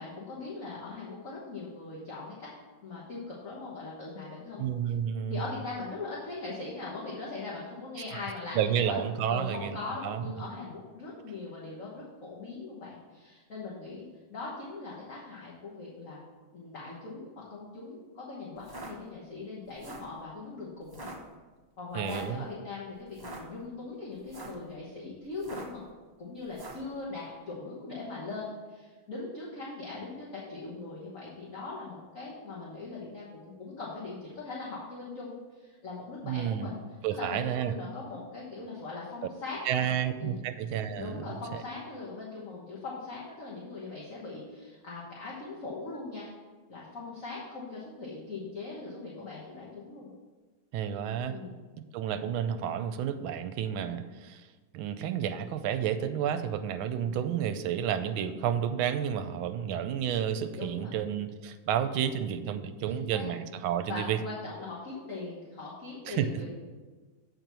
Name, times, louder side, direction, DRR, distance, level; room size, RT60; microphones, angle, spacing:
voice 1, 0.0-2.5 2.8-4.7 5.3-9.0 9.3-16.2 16.5-21.1 21.8-25.8 26.2-36.8 37.1-40.4 41.0-46.3 46.7-50.1 51.3-51.6 60.6-61.0 62.9-63.3 63.9-66.4, left 3 dB, 45° left, -5 dB, 1.5 m, -40 dB
voice 2, 4.6-5.5 8.5-9.8 10.0-10.5 21.9-22.4 36.2-36.7 37.0-37.7 39.6-41.3 41.5-41.6 50.7-51.4 51.8-54.5 54.7-64.2 66.1-66.4, right 9 dB, 80° right, 10 dB, 1.4 m, -31 dB
sound 1, 18.6-18.9 19.7-20.1 20.9-21.2 22.0-22.4 23.1-23.4 24.2-24.6 25.4-25.8 26.5-26.9, right 2 dB, 20° right, 0.6 m, -44 dB
7.7 x 4.6 x 6.7 m, 1.3 s
omnidirectional pair, 2.2 m